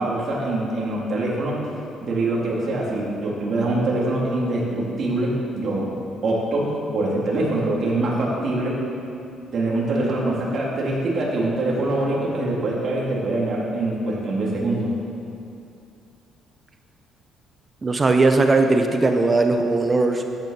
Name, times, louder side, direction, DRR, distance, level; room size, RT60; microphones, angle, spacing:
voice 1, 0.0-1.6 2.0-5.9 6.2-8.8 9.5-14.9, right 2 dB, 50° right, -4 dB, 4.0 m, -24 dB
voice 2, 17.8-20.2, right 3 dB, 30° right, 5 dB, 1.1 m, -18 dB
14.0 x 11.0 x 6.1 m, 2.6 s
cardioid pair, 100°, 0 cm